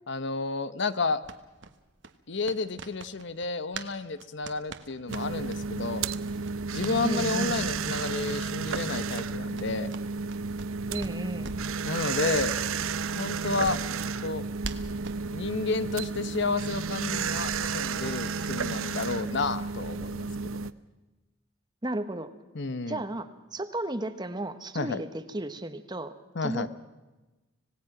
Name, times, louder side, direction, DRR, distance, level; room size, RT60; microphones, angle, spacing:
voice 1, 0.1-1.2 2.3-6.0 6.7-9.9 11.8-12.6 13.1-13.8 14.2-14.4 15.3-20.3 22.5-23.0 24.7-25.0 26.3-26.7, left 3 dB, 60° left, 13 dB, 0.9 m, -31 dB
sound 1, 1.2-5.6 6.0-6.1 6.4-7.0 7.3-7.5 7.8-7.9 8.2-8.4 8.7-10.7 11.0-11.7 12.0-12.2 12.5-12.6 13.0-15.2, right 4 dB, 60° right, 1.4 m, -43 dB
sound 2, 5.1-20.7, right 5 dB, 85° right, 0.7 m, -32 dB
voice 2, 7.0-7.7 10.9-11.5 21.8-22.3 22.9-26.1 26.4-26.7, right 1 dB, 20° right, 10 dB, 1.1 m, -33 dB
26.0 x 18.0 x 6.0 m, 1.1 s
head